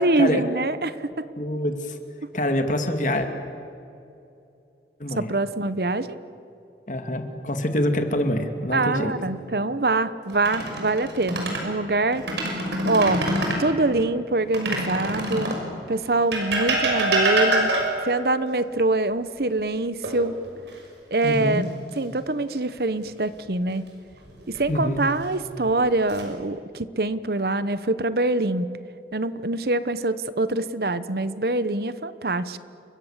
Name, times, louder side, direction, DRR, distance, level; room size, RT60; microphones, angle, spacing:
voice 1, 0.0-1.2 5.2-6.2 8.7-13.2 13.6-15.6 15.9-17.7 18.0-20.4 21.1-23.9 24.5-28.7 29.1-32.6, right 2 dB, 60° right, 14 dB, 1.0 m, -24 dB
voice 2, 1.4-2.0 2.3-3.3 5.0-5.3 6.9-9.1 21.2-21.6 24.7-25.0, left 1 dB, 45° left, 6 dB, 2.3 m, -25 dB
sound 1, 10.3-11.7 12.1-13.7 14.5-15.7 16.3-18.1 20.0-20.7 21.1-21.3 24.3-24.9 25.6-26.2, right 1 dB, 85° right, 6.1 m, -25 dB
29.5 x 23.5 x 7.4 m, 2.7 s
head